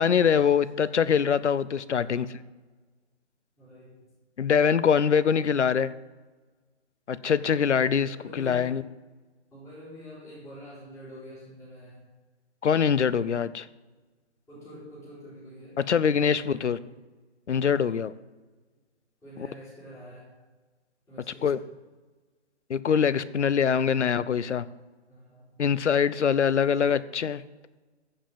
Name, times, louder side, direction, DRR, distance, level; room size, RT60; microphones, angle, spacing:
voice 1, 0.0-2.3 4.4-5.9 7.1-8.8 12.6-13.7 15.8-16.8 17.5-18.1 21.4-21.6 22.7-24.6 25.6-27.4, left 7 dB, 80° left, 17 dB, 0.7 m, -23 dB
voice 2, 1.9-2.3 3.6-4.0 7.2-7.6 7.9-8.7 9.5-12.0 14.5-15.8 16.2-17.0 17.6-18.0 19.2-20.3 21.1-21.7 25.1-25.6 26.6-26.8, equal, 10° left, -9 dB, 4.1 m, -47 dB
15.0 x 5.4 x 7.3 m, 1.3 s
hypercardioid pair, 150°, 34 cm